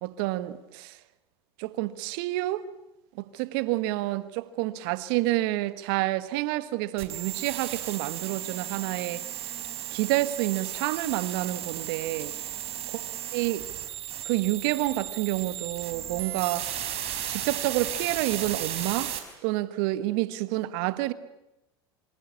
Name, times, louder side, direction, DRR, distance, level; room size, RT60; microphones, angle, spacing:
voice 1, 0.0-1.0 1.6-2.7 3.1-9.5 9.9-12.3 13.3-13.7 14.2-16.7 17.3-19.1 19.4-21.1, right 17 dB, 65° right, 1.5 m, -29 dB
sound 1, 7.0-19.2, right 11 dB, 50° right, 4.8 m, -35 dB
26.5 x 24.5 x 8.4 m
hypercardioid pair, 85°, 14 cm